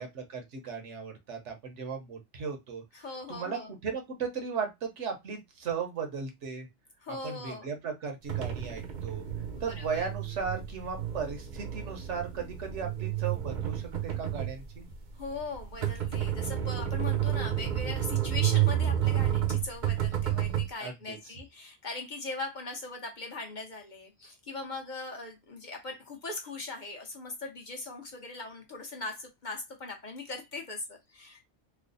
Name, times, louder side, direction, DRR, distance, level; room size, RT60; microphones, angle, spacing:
voice 1, 0.0-2.8 3.3-6.7 7.2-9.2 9.6-14.9 20.8-21.2, right 6 dB, 75° right, 1.2 m, -36 dB
voice 2, 2.9-3.7 7.0-7.7 9.6-10.1 15.2-31.4, left 3 dB, 45° left, 0.8 m, -40 dB
sound 1, 8.3-20.7, right 11 dB, 50° right, 0.7 m, -30 dB
3.2 x 2.0 x 3.8 m
omnidirectional pair, 1.2 m